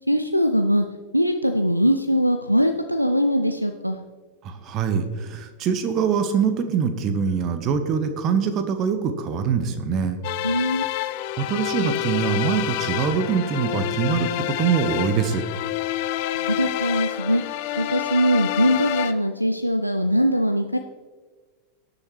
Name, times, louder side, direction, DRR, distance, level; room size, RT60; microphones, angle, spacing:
voice 1, 0.1-0.9 1.1-4.0 10.4-10.8 16.4-17.4 17.8-20.8, equal, 90° right, 8 dB, 0.4 m, -21 dB
voice 2, 4.4-10.2 11.4-14.3 14.6-15.4, right 6 dB, 35° right, 9 dB, 1.1 m, -23 dB
sound 1, 10.2-19.1, left 12 dB, 45° left, 0.5 m, -28 dB
18.0 x 7.0 x 3.1 m, 1.4 s
figure-of-eight pair, 90°, 0 cm